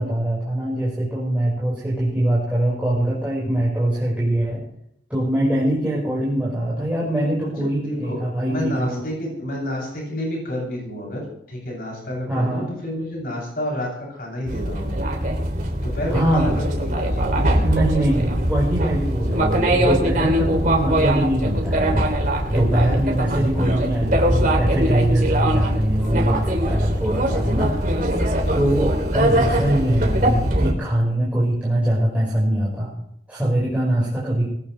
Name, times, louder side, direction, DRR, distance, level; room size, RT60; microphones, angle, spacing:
voice 1, 0.0-4.6 5.1-9.0 12.3-12.7 16.1-16.6 17.4-22.1 22.5-27.7 28.5-32.9 33.3-34.4, right 1 dB, 10° right, -7 dB, 5.3 m, -22 dB
voice 2, 7.9-8.2 8.5-11.2 11.5-15.0 15.7-17.7, equal, 55° left, -2 dB, 7.8 m, -30 dB
sound 1, 14.5-30.7, right 1 dB, 50° right, 3.2 m, -22 dB
21.5 x 16.5 x 3.4 m, 0.73 s
head